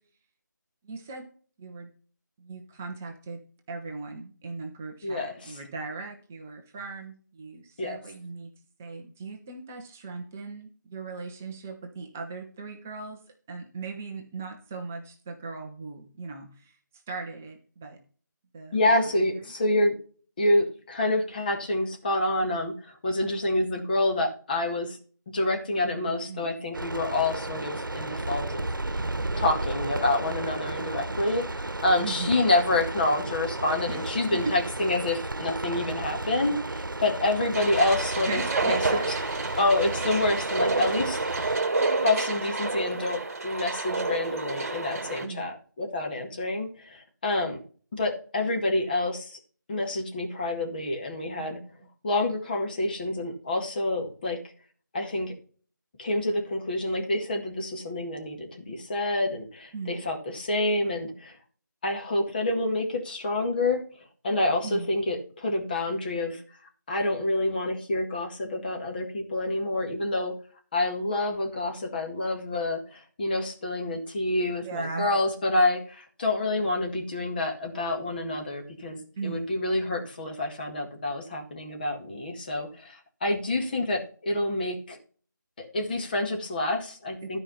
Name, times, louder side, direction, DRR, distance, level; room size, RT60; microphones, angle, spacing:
voice 1, 0.8-1.3 1.6-1.9 2.4-3.4 3.7-8.5 8.8-13.2 13.5-16.7 17.1-18.0 18.5-19.1 26.3-26.6 32.0-32.3 33.9-34.0 34.3-34.5 38.3-39.3 41.0-41.1 45.2-45.5 59.7-60.0 64.6-64.9 74.6-75.1 79.2-79.5 87.2-87.3, right 4 dB, 5° right, 4 dB, 0.4 m, -38 dB
voice 2, 5.0-5.6 7.8-8.0 18.7-20.0 20.4-25.0 25.3-29.0 29.4-39.0 39.6-41.2 41.9-47.6 47.9-49.4 49.7-51.6 52.0-54.4 54.9-55.3 56.0-61.4 61.8-63.8 64.2-66.4 66.9-70.3 70.7-85.0 85.6-87.4, left 2 dB, 25° left, 2 dB, 1.8 m, -28 dB
sound 1, 26.7-41.6, right 2 dB, 85° right, 0.9 m, -33 dB
sound 2, 37.5-45.2, right 3 dB, 45° right, 2.0 m, -29 dB
12.5 x 4.9 x 5.6 m, 0.41 s
figure-of-eight pair, 165°, 11 cm